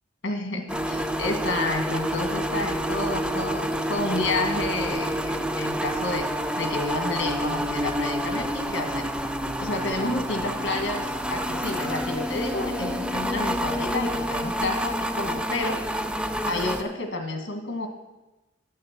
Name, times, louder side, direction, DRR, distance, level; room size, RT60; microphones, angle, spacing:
voice 1, 0.2-6.3 6.6-9.0 9.6-15.8 16.5-17.9, left 2 dB, 65° left, 4 dB, 1.6 m, -30 dB
sound 1, 0.7-16.8, equal, 5° right, 0.4 m, -28 dB
9.4 x 6.6 x 7.3 m, 1.0 s
head